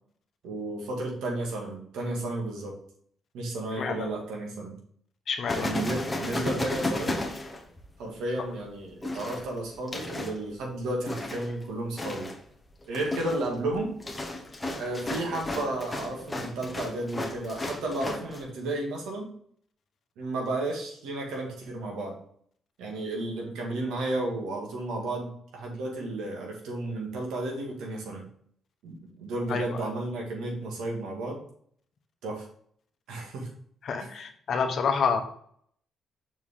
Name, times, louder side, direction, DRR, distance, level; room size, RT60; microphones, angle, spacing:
voice 1, 0.4-2.8 3.3-4.8 5.5-7.2 8.0-12.3 12.9-14.0 14.8-19.3 20.2-22.2 22.8-28.3 28.8-31.4 32.2-32.4 33.1-33.5 34.0-34.1, right 2 dB, 85° right, 0 dB, 1.9 m, -33 dB
voice 2, 3.8-4.1 5.3-5.7 29.5-29.8 33.8-35.2, left 6 dB, 60° left, 6 dB, 1.0 m, -28 dB
sound 1, 5.5-8.1 9.0-10.4 11.1-11.6 12.0-12.4 12.8-18.4, left 2 dB, 15° left, 1.2 m, -34 dB
6.1 x 4.6 x 3.7 m, 0.63 s
cardioid pair, 90°, 0 cm